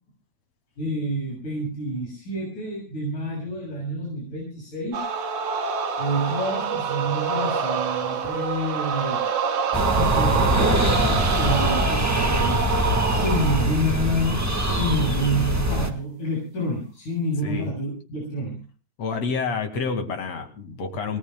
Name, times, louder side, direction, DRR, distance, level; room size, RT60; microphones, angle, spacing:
voice 1, 0.8-5.0 6.0-9.2 9.9-10.9 11.3-12.7 13.0-14.4 14.7-18.6, equal, 75° left, -4 dB, 8.5 m, -28 dB
sound 1, 4.9-13.8, right 6 dB, 75° right, 2.9 m, -27 dB
sound 2, 9.7-15.9, right 1 dB, 20° right, 0.4 m, -23 dB
voice 2, 19.0-21.2, left 5 dB, 60° left, 6 dB, 3.3 m, -28 dB
29.5 x 18.5 x 2.3 m, 0.34 s
omnidirectional pair, 3.5 m